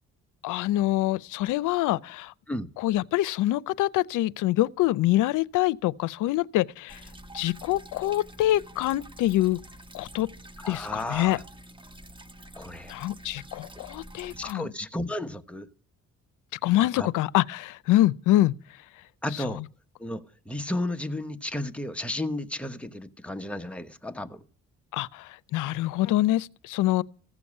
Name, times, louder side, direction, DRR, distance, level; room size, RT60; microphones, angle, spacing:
voice 1, 0.4-2.3 2.8-7.0 7.3-9.6 9.9-10.3 10.7-11.4 12.9-14.7 16.6-18.6 19.6-19.7 24.9-27.0, left 15 dB, 90° left, 0.6 m, -25 dB
sound 1, 6.9-14.5, right 1 dB, 15° right, 1.2 m, -47 dB
voice 2, 10.6-11.4 12.6-12.9 13.7-13.8 14.3-15.7 17.0-17.1 19.2-19.6 20.0-24.4, left 1 dB, 5° left, 1.1 m, -33 dB
15.0 x 7.1 x 9.7 m
cardioid pair, 90°, 30 cm